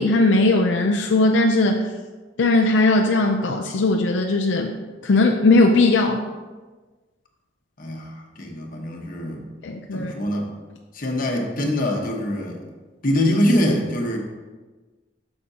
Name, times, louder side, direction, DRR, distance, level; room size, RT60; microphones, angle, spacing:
voice 1, 0.0-1.8 2.4-4.8 5.0-6.2 9.6-10.1, left 2 dB, 80° left, 2 dB, 0.5 m, -18 dB
voice 2, 7.8-9.5 9.9-10.5 10.9-12.6 13.0-14.2, left 1 dB, 50° left, 1 dB, 1.2 m, -23 dB
8.5 x 6.7 x 2.8 m, 1.3 s
head